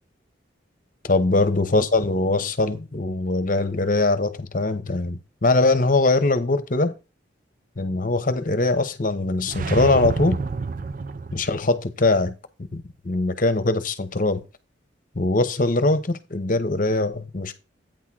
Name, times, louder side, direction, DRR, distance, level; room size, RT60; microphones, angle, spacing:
voice 1, 1.0-6.9 7.8-10.4 11.3-12.3 12.7-14.4 15.1-17.5, left 2 dB, 45° left, 0.9 m, -22 dB
sound 1, 9.4-11.7, right 4 dB, 45° right, 0.5 m, -28 dB
9.1 x 3.7 x 6.0 m
head